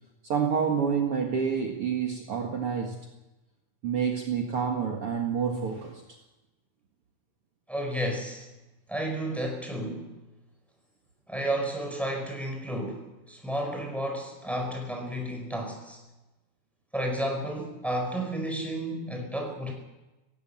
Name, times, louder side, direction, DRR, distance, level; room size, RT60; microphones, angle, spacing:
voice 1, 0.2-3.0 3.8-6.0, right 6 dB, 50° right, 1 dB, 2.5 m, -28 dB
voice 2, 7.7-8.5 8.9-10.2 11.3-16.0 16.9-19.7, right 1 dB, ahead, 2 dB, 4.6 m, -32 dB
17.5 x 16.5 x 9.0 m, 1.0 s
omnidirectional pair, 3.5 m